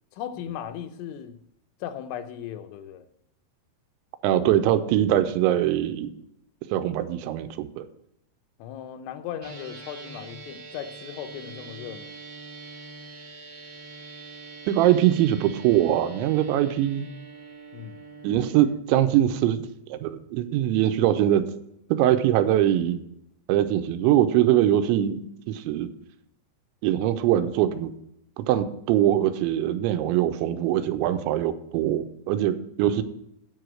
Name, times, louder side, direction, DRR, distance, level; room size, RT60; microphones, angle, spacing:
voice 1, 0.1-1.4 1.8-3.1 8.6-12.1 17.7-18.0, left 10 dB, 85° left, 8 dB, 3.2 m, -37 dB
voice 2, 4.2-6.1 6.7-7.9 14.7-17.1 18.2-21.4 21.9-23.0 23.5-25.9 26.8-27.9 28.4-33.0, right 12 dB, 85° right, 9 dB, 2.9 m, -22 dB
sound 1, 9.4-18.7, right 3 dB, 45° right, 1.3 m, -43 dB
9.6 x 4.9 x 7.7 m, 0.78 s
omnidirectional pair, 5.3 m